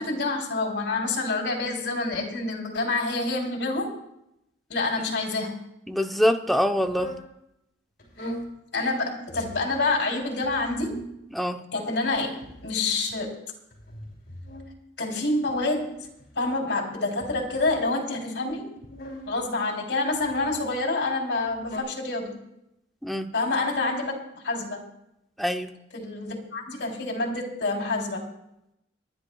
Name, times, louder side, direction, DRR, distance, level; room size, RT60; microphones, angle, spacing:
voice 1, 0.0-3.9 4.7-5.6 8.2-8.3 8.7-11.1 11.7-13.3 15.0-16.0 16.4-18.8 19.3-22.4 23.3-24.8 25.9-28.3, left 2 dB, 80° left, 0 dB, 3.4 m, -27 dB
voice 2, 5.9-7.2 11.3-11.6 23.0-23.3 25.4-25.7, equal, ahead, 4 dB, 0.7 m, -24 dB
sound 1, 6.9-7.3 8.0-8.5 9.3-9.7 10.4-11.1 12.0-13.2 13.7-14.7 15.5-16.4 17.2-17.9 18.8-19.4 20.1-20.7 21.4-21.8, equal, 55° left, 6.0 m, -41 dB
30.0 x 11.0 x 2.3 m, 0.82 s
head